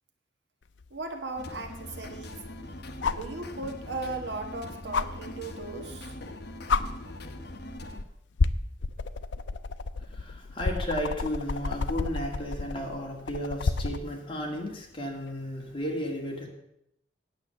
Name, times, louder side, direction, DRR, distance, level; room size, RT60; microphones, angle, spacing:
sound 1, 0.8-0.9 3.0-3.3 4.9-5.1 6.2-6.3 6.7-6.8 7.8-8.0 8.4-14.1 15.7-15.8, left 4 dB, 80° left, 0.5 m, -29 dB
voice 1, 0.9-2.4 3.1-6.1, right 3 dB, 70° right, 4 dB, 1.5 m, -37 dB
sound 2, 1.4-8.0, left 1 dB, 60° left, 1.0 m, -42 dB
voice 2, 10.1-16.5, equal, 30° left, 0 dB, 2.1 m, -34 dB
9.0 x 8.2 x 7.0 m, 0.79 s
head